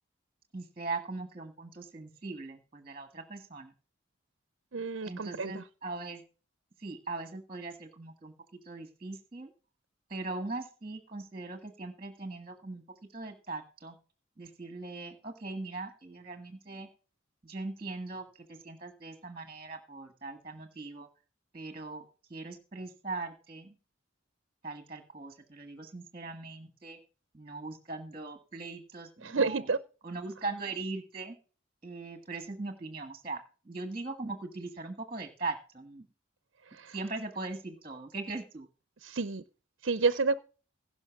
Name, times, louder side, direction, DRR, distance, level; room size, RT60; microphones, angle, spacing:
voice 1, 0.5-3.7 5.0-6.2 6.8-8.3 8.6-9.5 10.1-12.8 13.1-13.9 14.4-16.9 17.4-21.1 21.5-22.0 22.3-23.8 24.6-27.0 27.3-29.7 30.0-31.4 31.8-33.4 33.6-36.1 36.9-38.7, right 3 dB, 25° right, 7 dB, 1.6 m, -40 dB
voice 2, 4.7-5.6 29.2-29.8 36.7-37.0 39.0-39.4 39.8-40.4, right 4 dB, 65° right, 15 dB, 0.6 m, -30 dB
16.5 x 5.8 x 5.9 m, 0.36 s
head